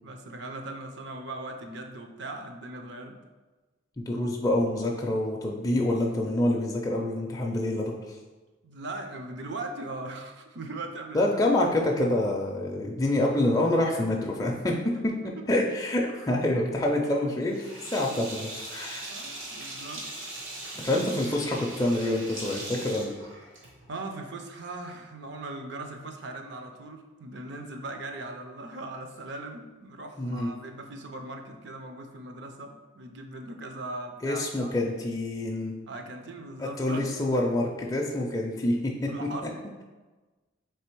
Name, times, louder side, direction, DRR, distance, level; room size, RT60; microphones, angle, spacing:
voice 1, 0.0-3.2 8.6-11.4 14.9-15.0 15.4-15.5 16.1-16.3 19.0-20.0 20.7-20.9 23.9-34.7 35.9-37.1 39.1-39.6, right 2 dB, 55° right, 4 dB, 0.5 m, -39 dB
voice 2, 4.0-8.2 11.1-14.7 15.0-15.1 15.5-19.1 20.8-23.1 30.2-30.5 34.2-35.7 36.6-38.9, left 1 dB, 20° left, -1 dB, 0.4 m, -27 dB
Sink (filling or washing), 17.5-23.9, right 2 dB, 80° right, 1.2 m, -40 dB
3.5 x 3.3 x 4.5 m, 1.2 s
head